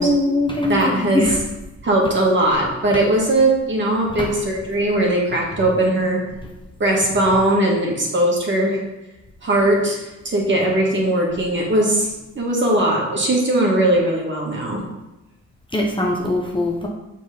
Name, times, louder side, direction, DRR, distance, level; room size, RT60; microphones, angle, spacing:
voice 1, 0.0-1.4 4.2-4.3 15.7-16.9, left 1 dB, 15° left, -1 dB, 1.0 m, -21 dB
voice 2, 0.7-1.2 1.8-6.2 6.8-8.8 9.4-14.8, right 1 dB, 40° right, -2 dB, 2.2 m, -19 dB
6.1 x 4.3 x 5.3 m, 1.0 s
cardioid pair, 90°, 30 cm